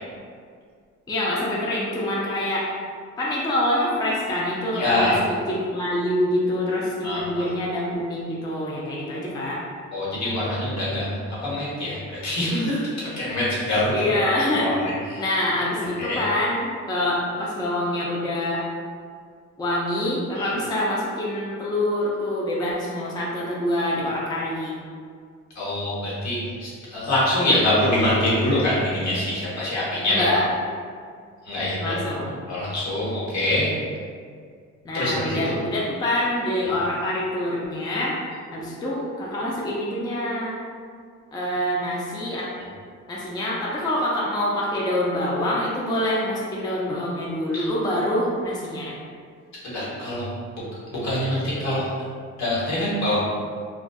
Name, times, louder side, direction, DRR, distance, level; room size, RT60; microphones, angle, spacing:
voice 1, 1.1-2.7 3.2-9.6 13.9-14.8 15.2-18.6 19.6-24.8 30.1-30.5 31.8-32.4 34.8-38.2 38.5-40.6 41.3-42.5 43.1-49.0, left 1 dB, 15° left, -5 dB, 0.4 m, -25 dB
voice 2, 4.7-5.2 7.0-7.5 9.9-14.2 14.6-14.8 15.1-15.2 16.0-16.2 20.4-20.5 25.5-30.3 31.5-31.9 32.5-33.7 34.9-35.5 47.5-47.7 49.7-50.2 50.9-51.8 52.4-53.2, left 1 dB, 65° left, -8 dB, 1.0 m, -24 dB
2.5 x 2.2 x 2.2 m, 2.1 s
cardioid pair, 90°, 30 cm